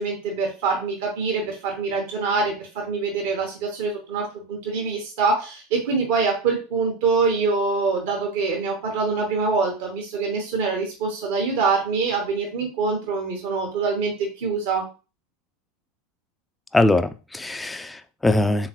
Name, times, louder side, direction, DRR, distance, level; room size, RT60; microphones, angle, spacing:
voice 1, 0.0-14.8, right 4 dB, 60° right, 0 dB, 1.0 m, -24 dB
voice 2, 16.7-18.7, left 2 dB, 10° left, 11 dB, 0.3 m, -22 dB
3.6 x 3.0 x 2.9 m, 0.34 s
figure-of-eight pair, 80°, 0 cm